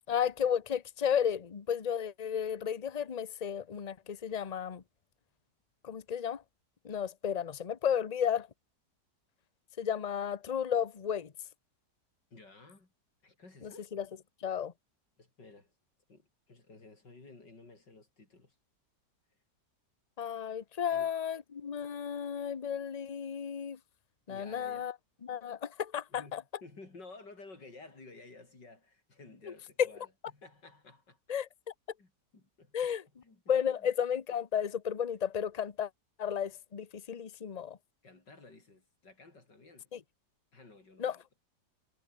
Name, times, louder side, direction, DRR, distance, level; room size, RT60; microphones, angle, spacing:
voice 1, 0.1-4.8 5.8-6.4 6.8-8.5 9.8-11.3 13.9-14.0 14.4-14.7 20.2-23.8 24.3-24.9 25.2-26.4 31.3-31.5 32.7-33.0 33.5-35.9 36.2-37.8 39.9-40.0 41.0-41.2, left 8 dB, 30° left, 0.8 m, -33 dB
voice 2, 12.3-12.9 13.2-13.9 15.2-15.7 16.1-18.6 20.9-21.1 24.3-24.9 26.1-31.2 32.0-33.0 33.2-33.4 33.8-33.9 38.0-39.9 40.5-41.2, left 3 dB, 80° left, 5.7 m, -54 dB
omnidirectional pair, 1.9 m